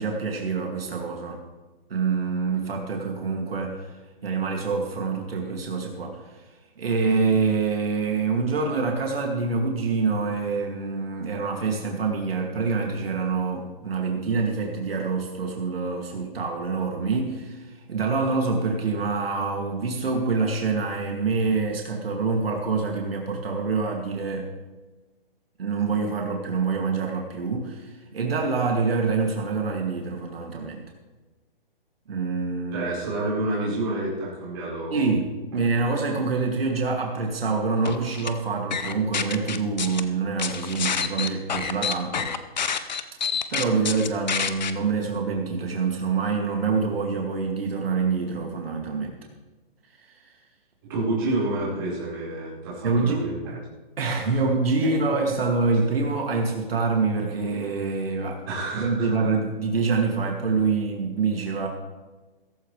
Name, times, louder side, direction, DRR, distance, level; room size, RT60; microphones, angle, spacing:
voice 1, 0.0-1.4 1.9-3.9 4.2-6.2 6.8-24.5 25.6-30.8 32.1-32.9 34.9-35.3 35.5-42.3 43.5-49.1 52.8-53.2 54.0-58.4 58.7-61.7, right 4 dB, 75° right, 0 dB, 2.5 m, -26 dB
voice 2, 32.7-35.1 50.8-53.6 54.2-54.4 55.0-55.1 58.5-59.1, right 2 dB, 25° right, -8 dB, 4.8 m, -29 dB
sound 1, 37.9-38.3 38.7-40.0 40.4-44.7, left 7 dB, 50° left, 0.8 m, -27 dB
16.0 x 14.5 x 3.3 m, 1.2 s
hypercardioid pair, 180°, 29 cm